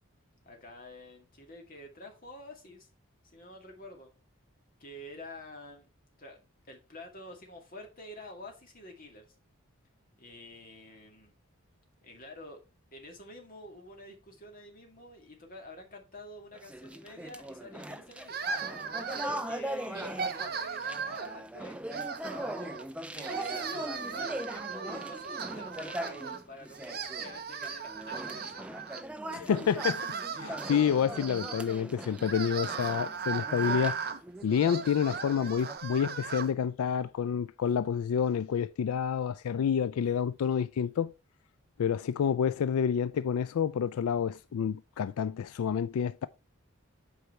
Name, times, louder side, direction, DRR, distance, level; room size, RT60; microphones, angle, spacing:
voice 1, 0.5-2.9 3.2-4.1 4.8-5.9 6.2-6.4 6.7-9.3 10.2-11.3 12.0-12.6 12.9-18.4 19.1-21.8 22.6-22.8 23.1-28.7, left 1 dB, 40° left, 2.0 m, -48 dB
sound 1, 16.5-35.8, right 1 dB, 5° right, 0.3 m, -41 dB
sound 2, 18.3-19.6 19.9-21.4 21.9-22.8 23.2-26.4 26.7-29.0 29.5-36.5, right 5 dB, 45° right, 0.9 m, -37 dB
voice 2, 29.3-34.0 34.4-41.1 41.8-46.3, left 7 dB, 85° left, 0.3 m, -29 dB
8.1 x 4.7 x 4.3 m
head